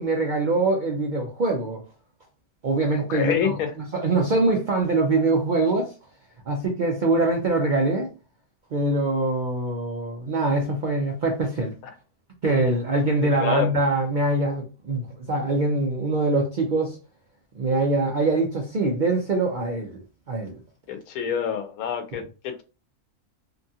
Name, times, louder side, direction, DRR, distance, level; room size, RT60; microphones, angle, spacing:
voice 1, 0.0-1.8 2.6-3.6 3.9-5.9 6.5-8.1 8.7-11.7 12.4-17.0 17.6-20.0 20.3-20.5 22.1-22.2, right 2 dB, 70° right, 0.4 m, -23 dB
voice 2, 3.1-3.7 13.4-13.7 20.9-22.6, left 8 dB, 85° left, 1.0 m, -27 dB
2.8 x 2.6 x 2.3 m
omnidirectional pair, 1.4 m